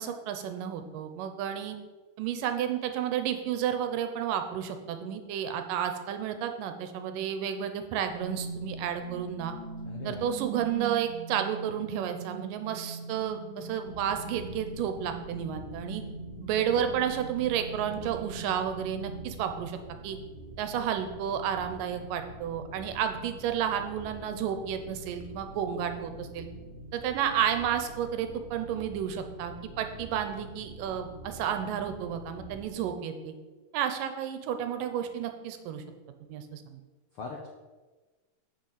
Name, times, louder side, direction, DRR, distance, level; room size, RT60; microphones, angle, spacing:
voice 1, 0.0-1.8 2.2-9.5 10.0-16.0 16.4-20.2 20.6-26.5 26.9-33.3 33.7-35.8 36.3-36.8, right 9 dB, 90° right, 8 dB, 2.4 m, -31 dB
sound 1, 8.1-20.1, right 4 dB, 65° right, 2.0 m, -41 dB
voice 2, 9.8-10.3 37.2-37.5, left 4 dB, 80° left, 0 dB, 1.2 m, -40 dB
sound 2, 13.8-32.7, right 1 dB, 45° right, 1.9 m, -46 dB
6.5 x 6.0 x 7.3 m, 1.3 s
omnidirectional pair, 3.8 m